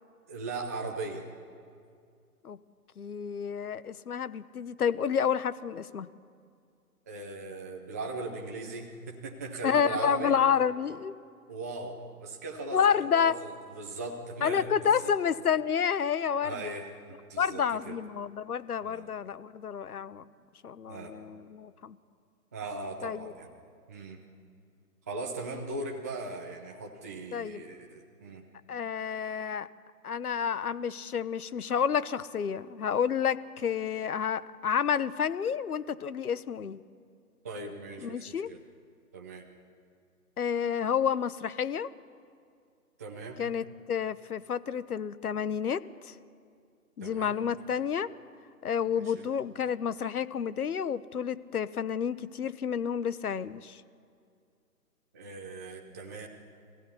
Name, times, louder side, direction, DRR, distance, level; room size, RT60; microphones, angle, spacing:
voice 1, 0.3-1.3 7.1-10.3 11.5-15.1 16.4-18.0 18.8-19.1 20.9-21.1 22.5-23.5 23.9-24.2 25.1-28.4 37.4-38.6 39.1-39.4 43.0-43.4 47.0-47.4 48.9-49.3 55.1-56.3, right 3 dB, 10° right, 1 dB, 0.6 m, -39 dB
voice 2, 3.0-6.1 9.6-11.1 12.7-13.4 14.4-16.6 17.4-20.2 20.6-22.0 23.0-23.3 27.3-27.6 28.7-29.7 30.0-36.8 38.0-38.5 40.4-41.9 43.4-46.1 47.0-48.1 48.6-53.8, left 7 dB, 70° left, 15 dB, 1.2 m, -29 dB
25.0 x 16.0 x 9.8 m, 2.3 s
hypercardioid pair, 150°, 47 cm